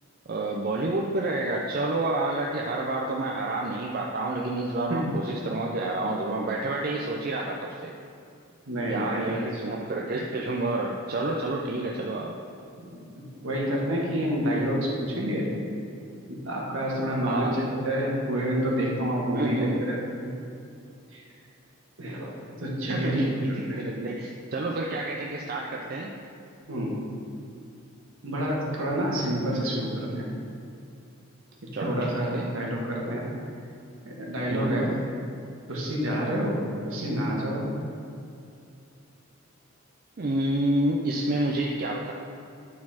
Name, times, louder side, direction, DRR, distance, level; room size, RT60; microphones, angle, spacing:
voice 1, 0.3-7.9 8.9-12.4 17.3-17.5 19.3-19.8 22.8-26.1 31.7-32.0 32.3-32.5 34.5-34.9 40.2-42.1, right 2 dB, 45° right, 0 dB, 0.4 m, -29 dB
voice 2, 8.7-9.6 12.8-12.9 13.1-15.5 16.3-20.3 21.1-21.2 22.0-22.3 22.6-23.8 26.7-27.0 28.2-30.3 31.8-33.3 34.0-34.9 35.7-36.6 36.9-37.7, equal, 65° right, -3 dB, 1.5 m, -28 dB
8.7 x 4.2 x 4.2 m, 2.6 s
head